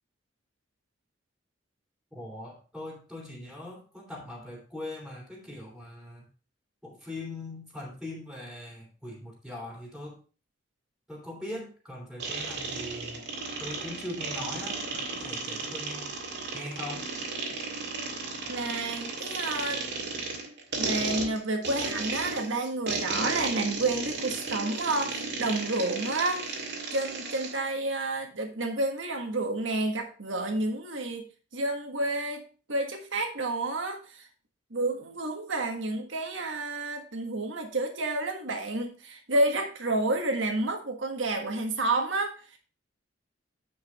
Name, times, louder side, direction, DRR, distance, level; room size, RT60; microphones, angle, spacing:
voice 1, 2.1-6.3 6.8-10.2 11.1-13.2 13.6-16.1 16.5-17.1, left 1 dB, ahead, -2 dB, 2.7 m, -41 dB
sound 1, 12.2-27.6, right 3 dB, 60° right, 1.9 m, -34 dB
voice 2, 18.5-19.8 20.8-31.2 31.5-34.3 34.7-42.6, right 2 dB, 75° right, 4 dB, 1.5 m, -30 dB
9.7 x 5.0 x 4.2 m, 0.37 s
head